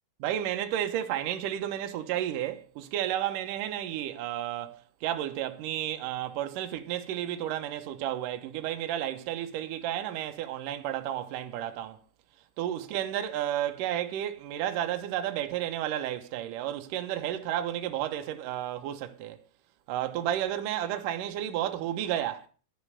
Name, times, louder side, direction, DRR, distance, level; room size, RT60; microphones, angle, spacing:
voice 1, 0.2-12.0 12.6-19.4 19.9-22.5, right 11 dB, 70° right, 2.3 m, -32 dB
12.0 x 6.7 x 8.1 m
omnidirectional pair, 4.8 m